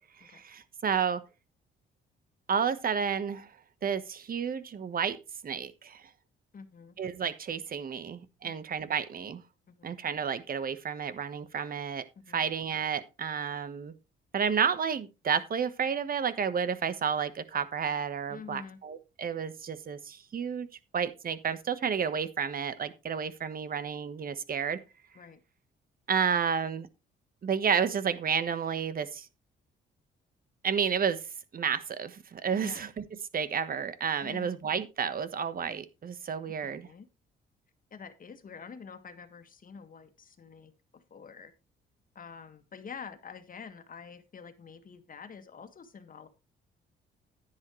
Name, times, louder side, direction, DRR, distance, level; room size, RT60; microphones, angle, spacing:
voice 1, 0.2-1.2 2.5-3.5 3.8-5.2 5.4-6.0 7.0-9.4 9.8-12.0 12.3-13.9 14.3-20.7 20.9-24.8 26.1-26.9 27.4-29.3 30.6-31.2 31.5-33.0 33.3-36.9, right 7 dB, 45° right, 13 dB, 1.3 m, -31 dB
voice 2, 6.5-7.0 8.4-8.6 9.7-9.9 12.3-12.4 18.3-18.8 25.1-25.4 32.6-32.8 34.2-34.5 36.4-37.1 37.9-41.5 42.2-46.3, left 6 dB, 45° left, 8 dB, 1.8 m, -47 dB
10.5 x 10.5 x 3.2 m, 0.27 s
cardioid pair, 90°, 20 cm